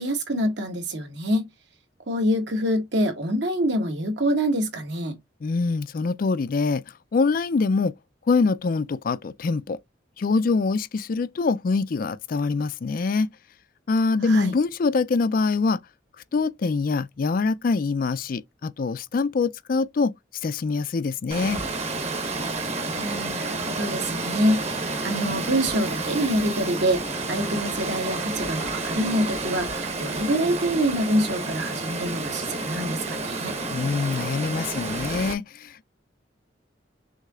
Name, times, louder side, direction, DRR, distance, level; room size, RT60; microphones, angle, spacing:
voice 1, 0.0-1.5 2.1-5.2 14.2-14.6 22.9-33.5, equal, 70° right, 1.5 m, -26 dB
voice 2, 5.4-6.8 7.1-7.9 8.3-9.8 10.2-13.3 13.9-15.8 16.3-20.1 20.4-21.6 33.7-35.9, left 4 dB, 50° left, 0.4 m, -24 dB
Water, 21.3-35.3, right 3 dB, 35° right, 1.1 m, -30 dB
6.3 x 2.8 x 2.4 m
head